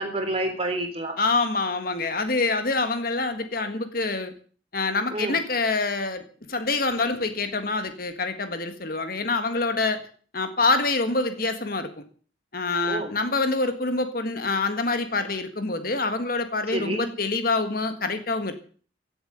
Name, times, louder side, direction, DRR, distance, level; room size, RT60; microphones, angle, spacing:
voice 1, 0.0-1.1 5.1-5.4 12.8-13.1 16.7-17.1, right 1 dB, 30° right, 3.7 m, -29 dB
voice 2, 1.2-4.3 4.7-10.0 10.3-11.9 12.5-18.5, left 3 dB, 50° left, 1.7 m, -26 dB
16.5 x 8.1 x 8.0 m
head